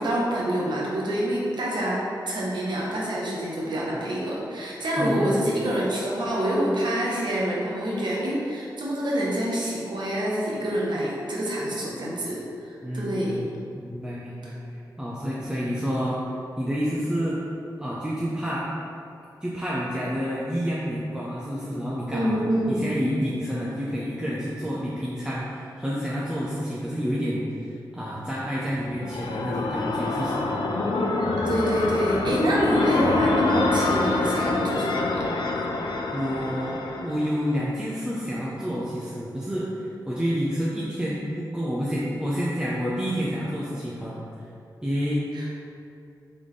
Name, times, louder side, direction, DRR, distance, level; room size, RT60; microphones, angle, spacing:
voice 1, 0.0-2.0 2.3-13.4 14.4-14.5 22.1-22.8 31.4-35.3 45.3-45.5, right 1 dB, 75° right, -5 dB, 0.9 m, -27 dB
voice 2, 5.0-5.4 12.8-14.5 15.0-16.2 16.6-17.4 17.8-18.6 19.4-22.4 22.7-30.4 36.1-44.2 44.8-45.2, equal, 10° right, -7 dB, 0.6 m, -29 dB
sound 1, 28.8-37.6, left 2 dB, 80° left, 0.4 m, -25 dB
4.0 x 3.5 x 3.2 m, 2.7 s
cardioid pair, 65°, 8 cm